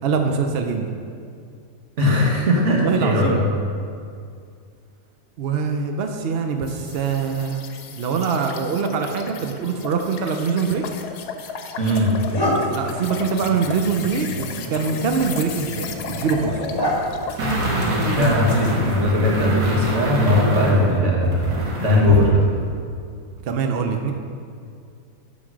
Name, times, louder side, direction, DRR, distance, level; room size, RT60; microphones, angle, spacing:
voice 1, 0.0-0.9 2.7-3.4 5.4-7.6 7.9-10.8 12.7-16.6 23.4-24.1, right 5 dB, 65° right, 4 dB, 0.6 m, -23 dB
voice 2, 2.0-3.6 11.8-12.1 18.2-21.3 21.8-22.4, left 1 dB, 50° right, -3 dB, 1.8 m, -19 dB
sound 1, 6.6-17.4, left 5 dB, 85° left, 1.2 m, -35 dB
sound 2, 11.2-11.3 11.8-19.2, equal, 20° left, 1.0 m, -30 dB
sound 3, 17.4-22.3 22.6-22.7, equal, 85° right, 1.8 m, -23 dB
9.4 x 4.0 x 6.2 m, 2.3 s
omnidirectional pair, 1.7 m